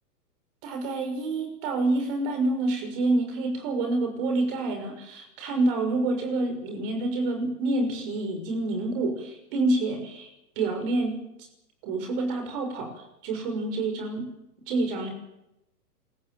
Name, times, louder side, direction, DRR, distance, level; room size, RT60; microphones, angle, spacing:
voice 1, 0.6-10.3 10.6-11.2 11.8-12.9 13.2-14.3 14.7-15.1, right 2 dB, 35° right, 5 dB, 6.0 m, -27 dB
27.0 x 14.5 x 9.2 m, 0.87 s
hypercardioid pair, 160°, 48 cm